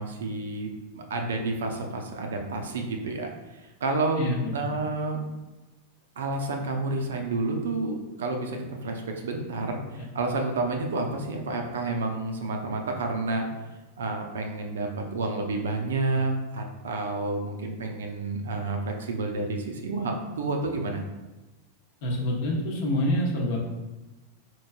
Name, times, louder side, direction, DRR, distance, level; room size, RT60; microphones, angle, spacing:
voice 1, 0.0-4.3 4.5-5.3 6.2-13.5 14.0-21.0, right 2 dB, 65° right, 3 dB, 0.5 m, -30 dB
voice 2, 4.2-4.8 22.0-23.6, left 1 dB, 50° left, -1 dB, 0.9 m, -27 dB
4.2 x 3.1 x 2.3 m, 1.1 s
figure-of-eight pair, 90°, 0 cm